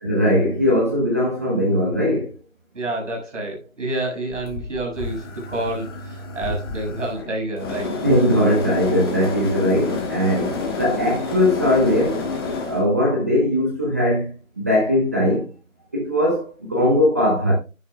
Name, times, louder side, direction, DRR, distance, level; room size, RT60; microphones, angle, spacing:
voice 1, 0.0-2.3 8.0-12.2 12.7-15.5 15.9-17.5, left 1 dB, 10° right, 0.8 m, -20 dB
voice 2, 2.7-7.9, right 1 dB, 65° right, 6.5 m, -28 dB
sound 1, 4.3-12.9, left 3 dB, 20° left, 1.7 m, -29 dB
11.5 x 11.0 x 2.2 m
figure-of-eight pair, 160°, 40 cm